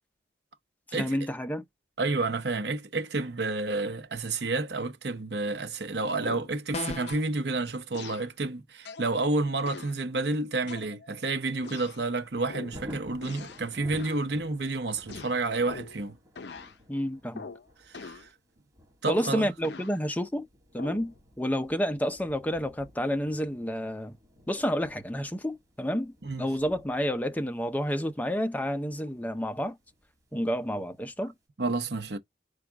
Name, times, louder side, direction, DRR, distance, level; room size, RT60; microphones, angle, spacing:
voice 1, 0.9-1.6 16.9-17.5 19.1-20.5 20.7-24.2 24.5-29.8 30.3-31.3, equal, 10° left, 0.6 m, -30 dB
voice 2, 2.0-16.2 17.9-18.3 19.0-19.5 26.2-26.5 31.6-32.2, right 3 dB, 70° right, 0.9 m, -30 dB
sound 1, 6.2-6.6 7.1-7.3 7.9-8.3 8.9-9.1 9.7-10.0 10.7-11.2 11.6-12.0 12.5-12.8 13.2-13.7 13.9-14.3 15.1-16.0 16.4-16.8 17.4-17.7 17.9-18.3 19.1-20.0 20.8-21.1, left 4 dB, 70° left, 0.6 m, -43 dB
sound 2, 6.7-7.3, left 3 dB, 40° left, 0.8 m, -34 dB
Thunder, 12.1-30.9 31.3-31.4, left 1 dB, 20° right, 2.7 m, -52 dB
4.9 x 2.4 x 4.5 m
head